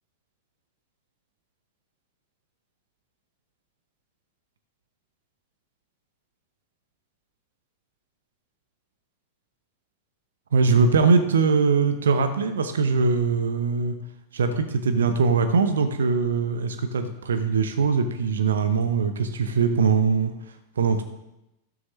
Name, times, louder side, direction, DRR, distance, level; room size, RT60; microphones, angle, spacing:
voice 1, 10.5-14.0 14.3-20.3 20.8-21.0, right 5 dB, 65° right, 9 dB, 0.9 m, -22 dB
16.0 x 6.3 x 3.2 m, 0.89 s
figure-of-eight pair, 90°, 0 cm